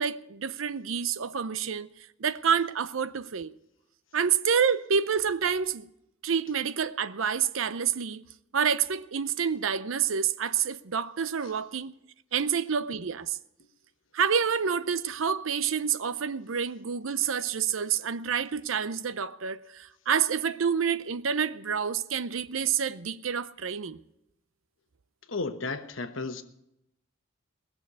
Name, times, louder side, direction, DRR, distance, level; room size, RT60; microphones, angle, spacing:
voice 1, 0.0-1.9 2.2-3.5 4.1-5.9 6.2-8.2 8.5-11.9 12.3-13.4 14.1-24.0, right 7 dB, 75° right, 0.6 m, -28 dB
voice 2, 25.3-26.4, left 3 dB, 70° left, 1.1 m, -33 dB
19.5 x 7.1 x 8.2 m
head